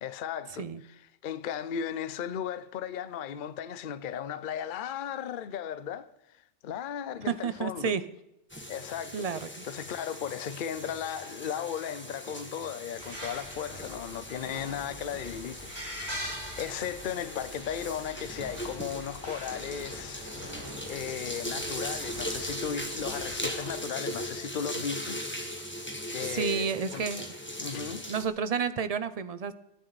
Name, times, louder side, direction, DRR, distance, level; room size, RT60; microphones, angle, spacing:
voice 1, 0.0-0.7 1.2-6.1 6.6-7.9 8.7-9.3 9.6-15.7 16.3-20.2 20.5-25.2 26.1-27.0 27.6-28.1, left 8 dB, 50° left, 0.7 m, -36 dB
voice 2, 7.2-8.0 9.1-9.7 26.2-27.4 28.1-29.5, right 6 dB, 35° right, 0.7 m, -31 dB
sound 1, 8.5-28.2, equal, 10° left, 1.9 m, -39 dB
Moscow construction site amb (stereo MS decoded), 13.0-23.8, equal, 55° right, 5.5 m, -43 dB
26.5 x 11.0 x 4.1 m
omnidirectional pair, 1.3 m